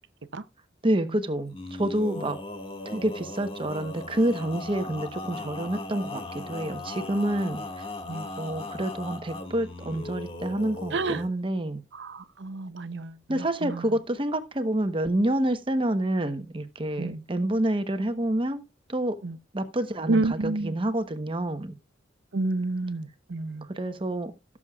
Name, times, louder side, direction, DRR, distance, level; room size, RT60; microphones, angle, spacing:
voice 1, 0.8-2.4 2.8-7.6 8.4-11.8 13.3-18.6 18.9-19.2 19.5-21.8 23.7-24.3, right 1 dB, 30° right, 1.0 m, -28 dB
Male singing, 1.5-11.3, left 2 dB, 30° left, 1.9 m, -38 dB
voice 2, 10.9-11.2 11.9-14.0 17.0-17.2 19.2-19.4 20.1-20.8 22.3-23.7, right 2 dB, 70° right, 0.7 m, -30 dB
17.0 x 7.2 x 2.3 m
head